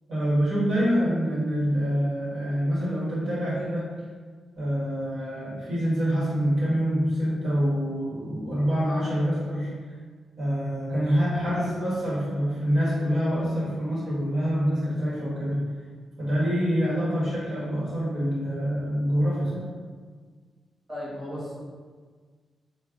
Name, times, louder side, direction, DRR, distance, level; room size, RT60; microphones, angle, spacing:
voice 1, 0.1-3.9 4.6-9.7 10.4-15.6 16.2-19.7, equal, 55° right, -8 dB, 1.5 m, -26 dB
voice 2, 20.9-21.6, left 1 dB, 35° right, -11 dB, 1.2 m, -35 dB
3.3 x 2.2 x 3.7 m, 1.5 s
cardioid pair, 85°, 0 cm